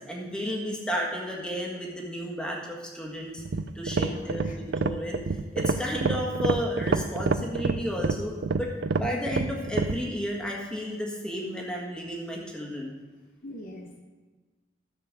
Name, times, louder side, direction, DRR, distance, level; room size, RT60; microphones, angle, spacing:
voice 1, 0.0-3.4 3.7-12.9, equal, 5° left, -2 dB, 1.7 m, -33 dB
sound 1, 3.4-10.0, right 4 dB, 65° right, 0.4 m, -27 dB
voice 2, 3.9-4.6 13.4-14.0, left 1 dB, 45° left, 3 dB, 0.8 m, -43 dB
13.5 x 4.5 x 6.7 m, 1.3 s
head